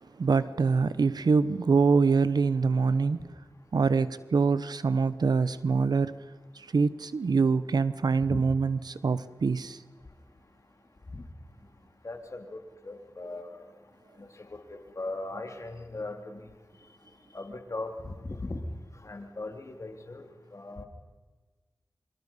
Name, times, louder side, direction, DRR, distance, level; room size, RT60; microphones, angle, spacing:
voice 1, 0.2-3.3 3.7-6.2 6.6-9.8, right 4 dB, 75° right, 0.9 m, -25 dB
voice 2, 12.0-12.6 12.8-13.6 14.2-16.4 17.3-18.6 19.0-20.2 20.5-20.8, left 2 dB, 45° left, 3.1 m, -38 dB
26.5 x 25.5 x 5.6 m
cardioid pair, 50°, 7 cm